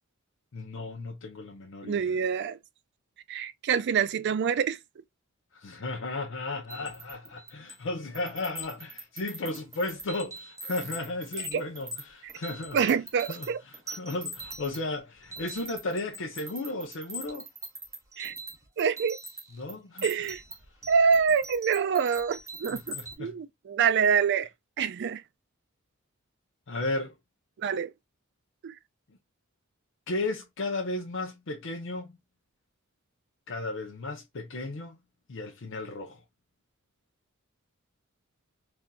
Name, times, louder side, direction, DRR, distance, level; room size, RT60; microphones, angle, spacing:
voice 1, 0.5-2.2 5.5-12.8 13.3-17.5 19.5-20.1 22.7-23.3 26.7-27.1 30.1-32.1 33.5-35.0 35.3-36.2, left 2 dB, 65° left, 0.6 m, -35 dB
voice 2, 1.8-2.6 3.3-4.8 11.5-11.6 12.2-12.3 12.7-13.6 18.2-18.3 18.8-19.2 20.0-20.4 20.9-24.5 24.8-25.2 27.6-27.9 28.6-28.7, right 6 dB, 55° right, 0.4 m, -26 dB
sound 1, 6.7-7.8 8.1-23.2, right 1 dB, 15° right, 0.9 m, -42 dB
3.9 x 2.6 x 2.2 m
head